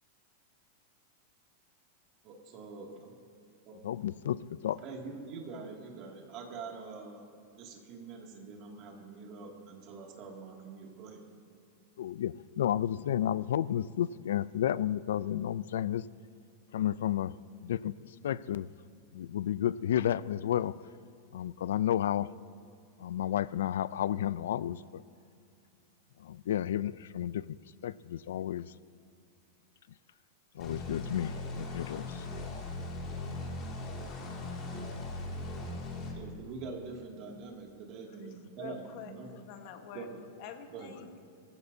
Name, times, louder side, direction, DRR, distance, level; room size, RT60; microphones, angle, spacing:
voice 1, 2.2-3.1 3.7-3.8 4.8-7.2 7.5-11.3 36.1-39.3 39.9-40.2 40.7-41.0, right 4 dB, 35° right, 0 dB, 2.3 m, -45 dB
voice 2, 3.8-4.8 12.0-16.1 16.7-18.7 19.1-20.7 21.3-22.3 23.0-25.0 26.2-27.6 27.8-28.7 30.5-32.3, left 11 dB, 85° left, 19 dB, 0.4 m, -32 dB
sound 1, 30.6-36.1, left 2 dB, 25° left, 2.4 m, -39 dB
voice 3, 38.2-40.1 40.4-41.3, left 9 dB, 45° left, 6 dB, 1.3 m, -47 dB
22.5 x 15.5 x 2.8 m, 2.5 s
supercardioid pair, 165°, 0 cm